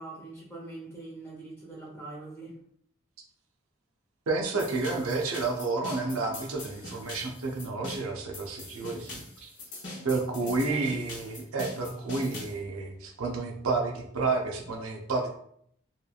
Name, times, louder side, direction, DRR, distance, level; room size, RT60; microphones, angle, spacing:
voice 1, 0.0-2.6 10.4-10.8, right 2 dB, 10° left, -5 dB, 0.8 m, -43 dB
voice 2, 4.3-9.5 10.0-15.3, right 3 dB, 85° right, 2 dB, 0.5 m, -30 dB
sound 1, 4.6-12.6, left 2 dB, 55° left, 0.9 m, -43 dB
2.9 x 2.4 x 2.3 m, 0.68 s
head